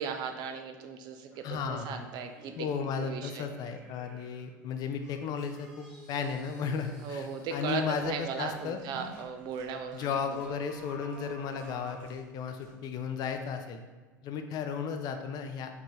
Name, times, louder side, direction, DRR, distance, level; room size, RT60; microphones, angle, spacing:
voice 1, 0.0-2.5 2.8-3.4 7.0-10.4, right 6 dB, 45° right, 6 dB, 0.5 m, -37 dB
sound 1, 1.3-4.5 5.0-8.6 10.4-12.7 13.2-13.3, right 1 dB, 5° right, 1.5 m, -54 dB
voice 2, 1.4-2.0 2.5-8.8 9.9-13.8 14.2-15.7, left 6 dB, 40° left, 6 dB, 0.5 m, -34 dB
sound 2, 7.5-13.8, right 3 dB, 60° right, 1.2 m, -56 dB
4.7 x 3.5 x 3.2 m, 1.4 s
figure-of-eight pair, 80°, 10 cm